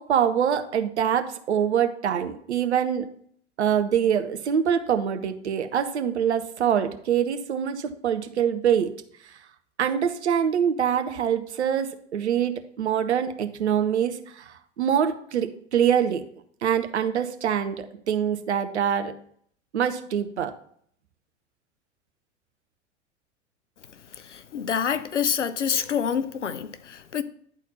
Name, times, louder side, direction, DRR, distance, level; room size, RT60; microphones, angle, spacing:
voice 1, 0.0-3.1 3.6-8.9 9.8-16.2 16.6-19.1 19.7-20.5, right 8 dB, 70° right, 0.9 m, -24 dB
voice 2, 24.2-27.2, left 7 dB, 80° left, 0.6 m, -27 dB
10.5 x 4.2 x 4.0 m
figure-of-eight pair, 90°, 36 cm